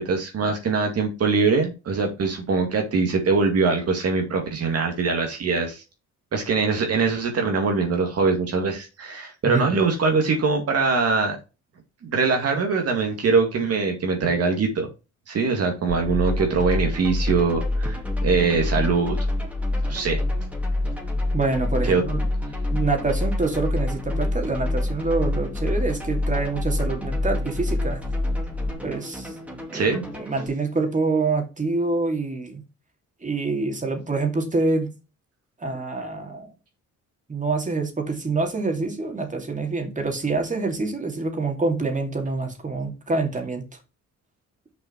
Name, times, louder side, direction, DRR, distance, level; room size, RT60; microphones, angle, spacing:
voice 1, 0.0-5.8 6.3-11.4 12.0-14.9 15.3-19.2 19.8-20.2 21.9-22.0 29.7-30.0, right 4 dB, 55° right, 2.1 m, -22 dB
sound 1, 15.9-28.7, left 2 dB, 20° left, 1.0 m, -26 dB
sound 2, 16.3-30.5, equal, 5° right, 2.6 m, -39 dB
voice 2, 21.3-22.2 22.7-28.0 28.8-29.3 29.7-32.6 33.2-34.9 35.6-36.5 37.3-43.6, right 3 dB, 25° right, 2.6 m, -26 dB
6.6 x 5.4 x 4.5 m
cardioid pair, 90°, 30 cm